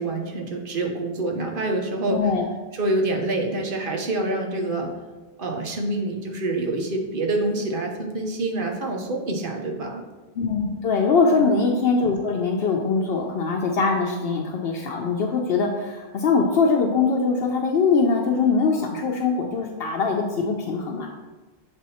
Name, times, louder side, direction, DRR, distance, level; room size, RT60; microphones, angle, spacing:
voice 1, 0.0-2.2 2.7-4.9 5.4-10.0 11.3-11.5, right 2 dB, 55° right, 1 dB, 1.1 m, -26 dB
voice 2, 2.1-2.4 10.4-21.1, left 4 dB, 70° left, 1 dB, 0.8 m, -22 dB
7.3 x 3.5 x 4.1 m, 1.2 s
omnidirectional pair, 1.1 m